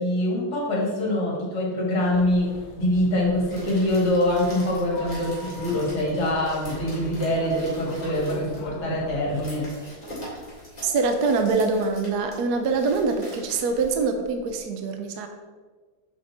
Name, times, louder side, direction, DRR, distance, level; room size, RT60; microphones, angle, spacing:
voice 1, 0.0-10.0, left 1 dB, 50° left, -4 dB, 2.6 m, -24 dB
sound 1, 2.1-9.4, left 2 dB, 70° left, 1.4 m, -41 dB
sound 2, 3.3-14.6, equal, 20° left, 2.4 m, -43 dB
voice 2, 10.8-15.3, right 4 dB, 70° right, 5 dB, 1.0 m, -24 dB
6.8 x 5.2 x 4.2 m, 1.4 s
omnidirectional pair, 2.3 m